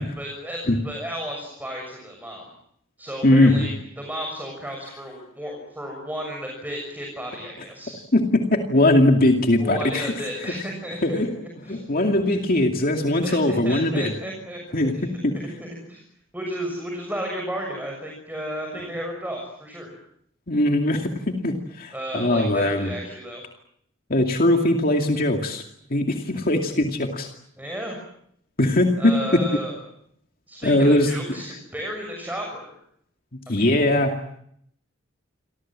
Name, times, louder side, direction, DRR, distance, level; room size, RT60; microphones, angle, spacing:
voice 1, 0.0-2.5 3.0-3.7 4.0-8.0 9.6-11.2 11.6-11.8 13.2-15.2 15.6-16.0 16.3-19.9 21.9-23.4 27.6-28.0 29.0-29.8 30.5-32.7 33.5-33.7, equal, 10° right, 1 dB, 6.6 m, -33 dB
voice 2, 3.2-3.7 8.1-10.1 11.0-11.3 11.7-14.1 14.7-14.9 15.2-15.4 20.5-22.9 24.1-25.6 25.9-27.3 28.6-29.4 30.6-31.1 33.5-34.1, left 1 dB, 50° left, 3 dB, 2.4 m, -20 dB
28.5 x 24.5 x 7.5 m, 0.71 s
head